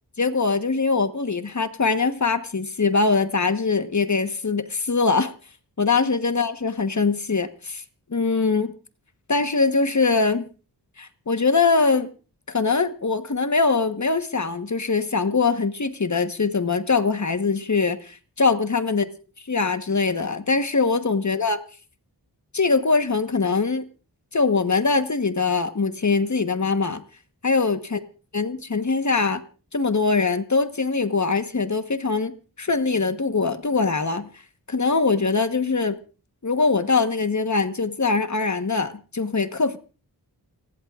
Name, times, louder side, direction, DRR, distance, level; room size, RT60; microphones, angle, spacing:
voice 1, 0.2-5.3 5.8-7.8 8.1-8.7 9.3-10.5 11.0-12.1 12.5-19.1 19.5-21.6 22.5-23.8 24.3-27.0 27.4-28.0 28.3-29.4 29.7-34.3 34.7-36.0 36.4-39.8, left 4 dB, 45° left, 9 dB, 1.2 m, -22 dB
29.5 x 11.5 x 2.4 m, 0.36 s
wide cardioid pair, 55°, 41 cm